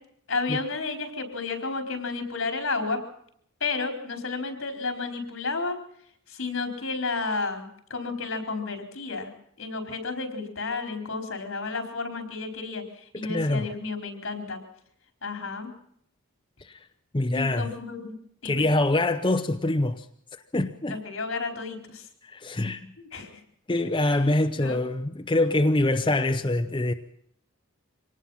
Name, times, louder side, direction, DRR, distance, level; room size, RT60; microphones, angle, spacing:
voice 1, 0.3-3.0 3.6-5.8 6.3-9.3 9.6-14.6 15.2-15.7 17.3-18.1 18.4-18.7 20.9-22.1 23.0-23.4 24.1-24.2 24.6-24.8, left 3 dB, 75° left, 4.4 m, -32 dB
voice 2, 13.3-13.7 16.6-16.9 17.1-17.7 18.4-20.1 20.5-21.0 22.2-22.9 23.7-26.9, left 2 dB, 25° left, 0.7 m, -24 dB
25.0 x 18.5 x 5.7 m
head